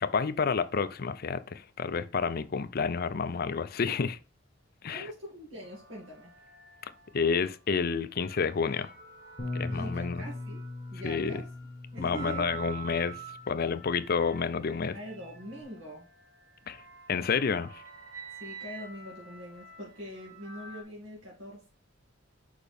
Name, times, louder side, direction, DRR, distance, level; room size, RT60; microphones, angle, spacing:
voice 1, 0.0-4.2 4.8-5.0 6.8-8.9 9.5-10.2 11.0-11.4 12.0-13.2 13.5-15.0 16.7-16.8 17.1-17.8, left 5 dB, 50° left, 0.5 m, -30 dB
voice 2, 4.9-6.3 9.7-11.5 11.9-12.7 14.9-16.1 18.4-21.7, equal, 85° right, 2.4 m, -43 dB
sound 1, 5.6-7.5 8.0-20.8, right 6 dB, 70° right, 2.1 m, -48 dB
Bass guitar, 9.4-15.6, left 2 dB, 30° left, 1.1 m, -41 dB
6.5 x 5.0 x 3.5 m
head